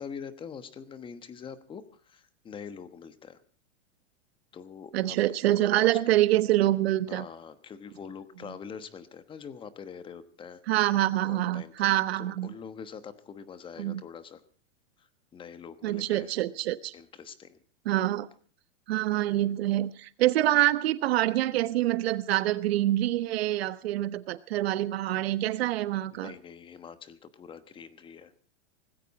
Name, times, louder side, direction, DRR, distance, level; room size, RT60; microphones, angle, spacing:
voice 1, 0.0-3.4 4.5-5.2 5.5-6.0 7.1-10.6 11.2-11.9 12.2-14.4 15.0-15.1 15.3-16.3 16.9-17.6 26.1-28.3, left 6 dB, 15° left, 12 dB, 1.1 m, -44 dB
voice 2, 4.9-7.2 10.7-12.5 13.8-14.0 15.8-16.9 17.8-18.3 18.9-26.3, right 15 dB, 60° right, 14 dB, 1.3 m, -26 dB
19.5 x 16.0 x 4.2 m, 0.42 s
supercardioid pair, 150°, 34 cm